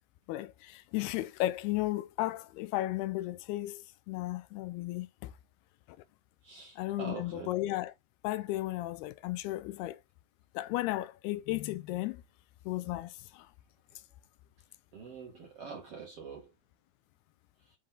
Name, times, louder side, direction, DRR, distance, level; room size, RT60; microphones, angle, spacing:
voice 1, 0.3-5.3 6.8-7.9 8.2-10.0 10.5-12.2 12.7-13.5, left 16 dB, 85° left, 2.5 m, -34 dB
voice 2, 6.4-7.5 14.9-16.5, right 5 dB, 55° right, 1.7 m, -44 dB
7.5 x 3.8 x 3.6 m
omnidirectional pair, 4.6 m